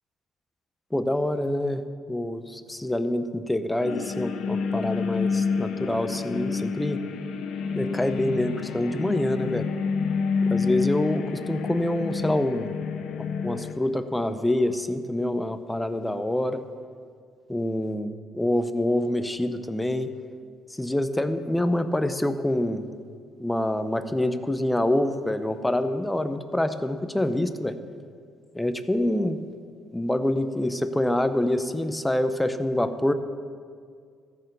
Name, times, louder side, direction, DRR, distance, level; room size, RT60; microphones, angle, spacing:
voice 1, 0.9-1.8 2.1-7.0 7.7-9.7 10.5-12.7 13.4-16.6 17.5-20.1 20.7-22.8 23.4-27.8 28.5-29.4 29.9-33.1, left 1 dB, 10° left, 10 dB, 0.7 m, -26 dB
sound 1, 3.8-13.7, left 5 dB, 80° left, 0.9 m, -28 dB
14.0 x 6.6 x 6.8 m, 2.1 s
cardioid pair, 100°, 0 cm